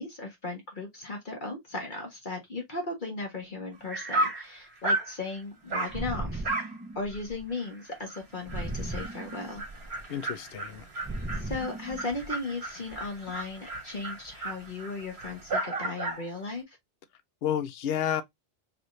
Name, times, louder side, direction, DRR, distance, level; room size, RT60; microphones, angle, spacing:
voice 1, 0.0-6.5 6.9-9.6 11.3-16.8, left 3 dB, 50° left, 1.3 m, -36 dB
sound 1, 3.3-3.6 3.9-5.4 5.9-8.0 8.5-10.5 11.0-12.1 12.6-13.1 13.6-13.7, right 1 dB, 20° right, 0.4 m, -38 dB
Dog, 3.8-3.9 4.1-4.5 4.8-5.1 5.7-6.0 6.4-6.8 7.1-7.2 7.6-7.7 8.1-8.2 8.5-16.3, right 2 dB, 75° right, 1.5 m, -34 dB
voice 2, 10.1-10.8 17.4-18.2, left 10 dB, 70° left, 0.8 m, -30 dB
4.8 x 2.5 x 3.1 m
omnidirectional pair, 1.1 m